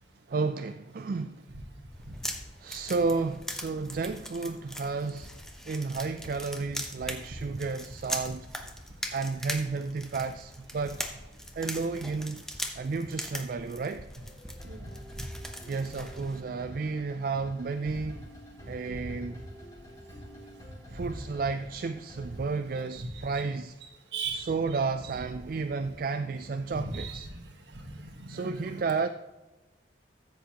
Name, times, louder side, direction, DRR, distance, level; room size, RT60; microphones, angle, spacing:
voice 1, 0.3-1.4 2.6-5.3 5.7-8.5 9.1-11.0 11.6-12.4 12.8-14.1 15.7-18.3 18.7-19.4 20.9-23.7 24.3-27.3 28.3-29.1, right 4 dB, 50° right, 9 dB, 0.3 m, -32 dB
sound 1, 1.9-16.4, left 1 dB, 5° left, 0.8 m, -41 dB
sound 2, 14.1-22.4, equal, 20° left, 2.8 m, -48 dB
voice 2, 14.6-15.3 18.9-19.1 20.9-21.1 22.2-22.3 22.9-23.4 23.8-25.3 26.6-29.0, right 3 dB, 70° right, 5 dB, 1.3 m, -40 dB
14.5 x 7.9 x 2.9 m, 1.1 s
head